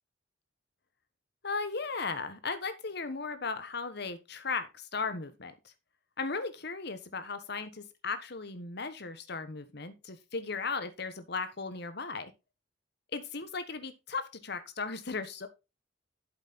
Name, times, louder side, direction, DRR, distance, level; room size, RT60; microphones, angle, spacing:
voice 1, 1.4-5.5 6.2-12.3 13.1-15.5, left 4 dB, 60° left, 11 dB, 1.4 m, -36 dB
8.3 x 7.6 x 4.3 m, 0.26 s
head